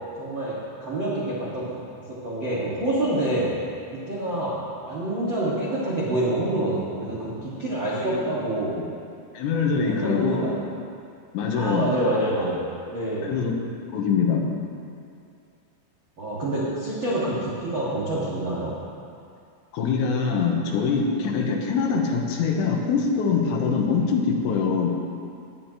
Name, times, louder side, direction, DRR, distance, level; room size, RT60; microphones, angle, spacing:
voice 1, 0.2-1.7 2.1-3.5 3.9-4.6 4.8-8.7 9.7-10.5 11.5-13.3 16.2-18.7, right 1 dB, 70° right, -9 dB, 1.1 m, -27 dB
voice 2, 9.3-10.4 11.3-11.9 13.2-13.5 13.9-14.4 19.7-25.0, left 5 dB, 85° left, 0 dB, 3.4 m, -23 dB
19.0 x 8.9 x 2.9 m, 2.4 s
omnidirectional pair, 5.2 m